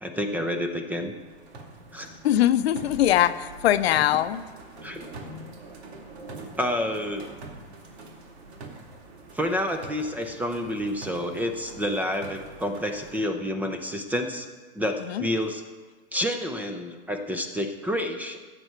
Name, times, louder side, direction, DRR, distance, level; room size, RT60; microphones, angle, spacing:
voice 1, 0.0-1.1 1.9-2.2 4.8-5.0 6.6-7.3 9.3-14.5 14.7-15.6 16.1-18.4, equal, 5° right, 6 dB, 0.5 m, -29 dB
sound 1, 1.0-13.2, right 2 dB, 85° right, 2.6 m, -44 dB
voice 2, 2.2-4.4 15.0-15.3, left 12 dB, 75° left, 12 dB, 0.7 m, -22 dB
16.5 x 8.0 x 4.5 m, 1.4 s
supercardioid pair, 145°, 32 cm